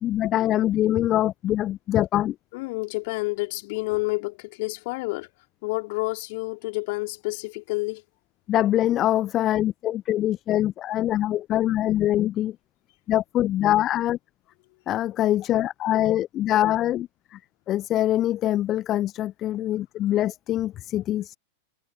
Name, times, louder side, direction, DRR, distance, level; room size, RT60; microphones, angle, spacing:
voice 1, 0.0-2.4 8.5-12.6 13.1-14.2 14.9-17.4 17.7-21.4, left 13 dB, 30° left, 0.6 m, -24 dB
voice 2, 2.5-5.3 5.6-8.0, left 25 dB, 50° left, 3.4 m, -29 dB
figure-of-eight pair, 90°, 0 cm